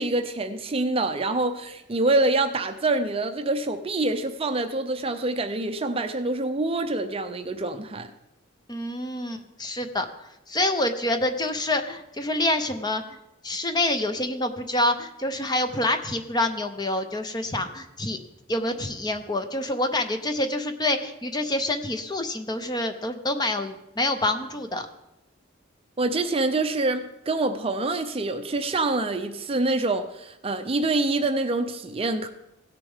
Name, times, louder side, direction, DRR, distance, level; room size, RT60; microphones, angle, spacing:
voice 1, 0.0-8.1 26.0-32.3, right 2 dB, 30° right, 0.5 m, -26 dB
voice 2, 8.7-10.1 10.5-13.0 13.4-18.2 18.5-24.9, left 1 dB, 20° left, 0.7 m, -27 dB
17.0 x 6.7 x 3.6 m
head